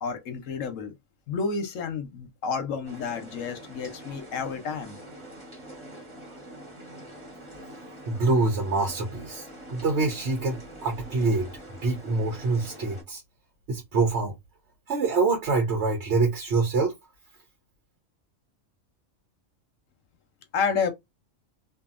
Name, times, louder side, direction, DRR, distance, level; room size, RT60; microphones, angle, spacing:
voice 1, 0.0-0.9 1.3-5.0 20.5-20.9, left 5 dB, 80° left, 1.1 m, -30 dB
sound 1, 2.8-13.0, right 1 dB, 25° right, 1.3 m, -45 dB
voice 2, 8.1-11.5 11.8-13.2 13.7-14.3 14.9-16.9, right 3 dB, 65° right, 1.1 m, -25 dB
2.7 x 2.6 x 2.4 m
omnidirectional pair, 1.3 m